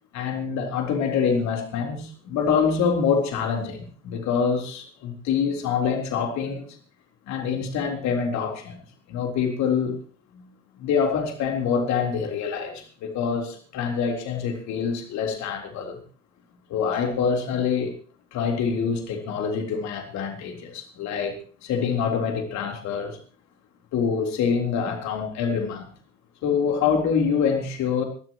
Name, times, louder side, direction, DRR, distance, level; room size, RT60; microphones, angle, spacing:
voice 1, 0.1-6.8 7.3-8.8 9.1-10.0 10.8-16.0 16.7-17.9 18.3-23.2 23.9-25.9 26.4-28.0, left 6 dB, 45° left, 3.8 m, -25 dB
25.5 x 12.5 x 3.0 m
figure-of-eight pair, 65°, 38 cm